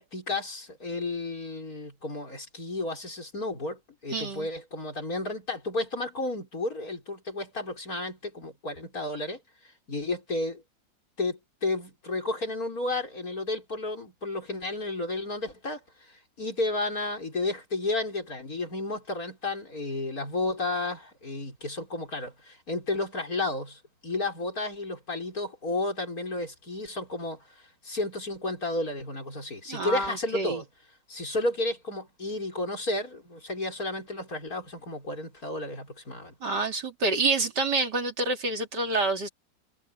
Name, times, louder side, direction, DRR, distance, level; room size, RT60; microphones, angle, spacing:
voice 1, 0.0-9.4 9.9-10.6 11.2-27.4 27.8-30.7 31.1-36.3, left 2 dB, 50° left, 6.0 m, -32 dB
voice 2, 4.1-4.5 29.7-30.6 36.4-39.3, right 3 dB, 65° right, 3.2 m, -28 dB
omnidirectional pair, 2.0 m